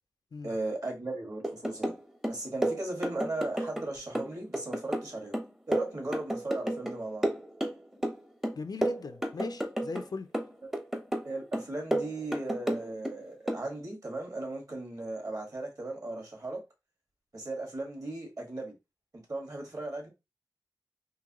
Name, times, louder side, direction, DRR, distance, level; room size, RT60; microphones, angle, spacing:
voice 1, 0.4-1.9 2.3-5.4 5.7-7.2 11.2-16.6 17.3-18.7 19.3-20.1, right 2 dB, 50° right, 1.7 m, -37 dB
sound 1, 1.4-2.0 2.2-3.9 4.2-7.0 7.2-8.2 8.4-10.1 10.3-11.3 11.5-13.2 13.5-13.7, right 1 dB, 5° right, 0.6 m, -31 dB
voice 2, 8.6-10.3, left 4 dB, 65° left, 0.4 m, -39 dB
3.8 x 2.7 x 2.9 m
wide cardioid pair, 60°, 7 cm